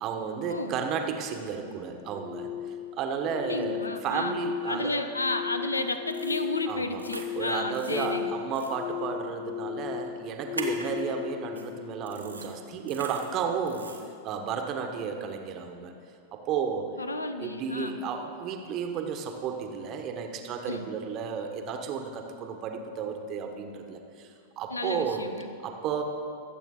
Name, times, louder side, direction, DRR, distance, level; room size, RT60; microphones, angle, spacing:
voice 1, 0.0-2.5 2.9-5.0 6.7-7.0 7.3-13.9 14.2-15.9 16.3-16.9 17.4-24.3 24.6-25.2 25.6-26.0, right 6 dB, 35° right, 4 dB, 1.3 m, -33 dB
sound 1, 2.0-13.0, left 10 dB, 45° left, 0.5 m, -37 dB
voice 2, 3.4-4.4 4.7-8.4 17.0-18.0 20.7-20.9 24.7-25.5, left 2 dB, 80° left, 9 dB, 0.8 m, -32 dB
sound 2, 6.1-6.4 7.0-7.3 7.7-8.1 8.6-8.7 10.5-10.9 11.6-11.7 12.1-12.5 12.9-13.3 13.7-14.0, right 4 dB, 85° right, 1.4 m, -41 dB
22.0 x 8.1 x 3.8 m, 2.3 s
figure-of-eight pair, 90°, 0 cm